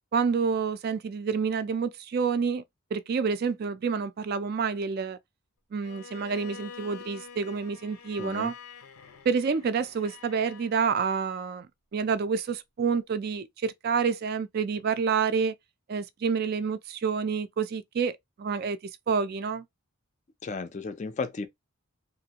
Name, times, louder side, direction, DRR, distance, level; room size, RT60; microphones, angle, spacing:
voice 1, 0.1-2.6 2.9-5.2 5.7-8.5 9.3-11.7 11.9-15.5 15.9-18.8 19.1-19.6, right 5 dB, 45° right, 0.3 m, -28 dB
Bowed string instrument, 5.8-10.7, left 6 dB, 85° left, 0.6 m, -46 dB
voice 2, 8.2-8.5 20.4-21.5, left 4 dB, 35° left, 0.4 m, -34 dB
3.0 x 2.4 x 2.8 m
head